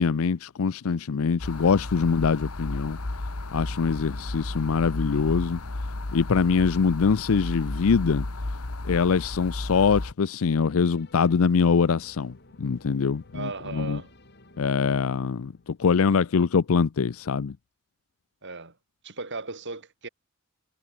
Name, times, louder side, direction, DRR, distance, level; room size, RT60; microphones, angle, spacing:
voice 1, 0.0-3.0 3.5-5.6 6.1-8.2 8.9-14.0 14.6-17.5, left 5 dB, 70° left, 0.5 m, -23 dB
sound 1, 1.4-10.1, left 2 dB, 90° left, 1.6 m, -33 dB
sound 2, 10.5-16.0, left 1 dB, 50° left, 7.7 m, -54 dB
voice 2, 13.3-14.1 18.4-18.7 19.0-20.1, right 3 dB, 55° right, 4.9 m, -36 dB
head